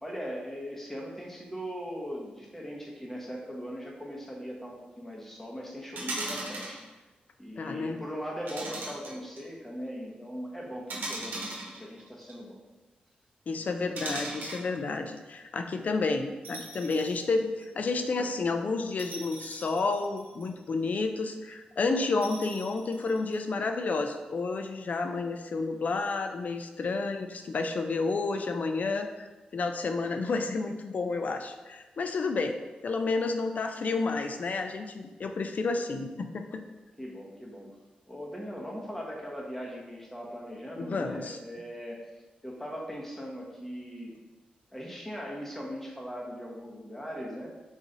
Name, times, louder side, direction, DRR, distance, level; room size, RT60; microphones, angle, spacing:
voice 1, 0.0-6.8 7.4-12.6 37.0-37.7 38.1-42.0 42.4-44.1 44.7-47.5, equal, 10° left, -2 dB, 1.0 m, -39 dB
sound 1, 6.0-6.8 8.5-9.4 10.9-12.3 14.0-14.7 16.4-17.2 17.6-17.7 19.0-20.6 22.2-23.4, right 2 dB, 90° right, 0.9 m, -38 dB
voice 2, 7.6-8.0 13.5-29.3 29.5-32.5 32.8-36.6 40.8-41.4, left 3 dB, 60° left, 6 dB, 0.4 m, -30 dB
4.0 x 3.0 x 3.9 m, 1.2 s
cardioid pair, 65°, 3 cm